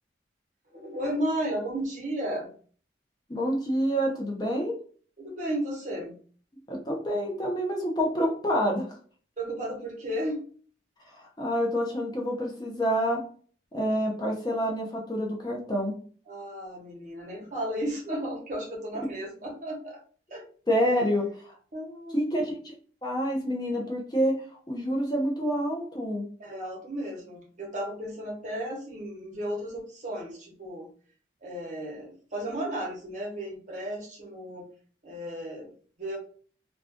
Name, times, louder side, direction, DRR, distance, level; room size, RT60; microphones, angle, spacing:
voice 1, 0.7-2.5 5.2-6.2 9.4-10.4 16.3-20.0 20.3-20.5 20.8-21.0 21.7-22.3 26.4-30.9 31.4-34.6 35.0-35.7 36.0-36.2, right 1 dB, 45° right, -2 dB, 1.0 m, -34 dB
voice 2, 3.3-4.8 6.7-8.9 11.1-13.2 13.7-15.9 20.7-21.6 22.1-22.7 23.0-26.3, equal, 25° left, 0 dB, 0.6 m, -28 dB
2.5 x 2.3 x 3.4 m, 0.44 s
head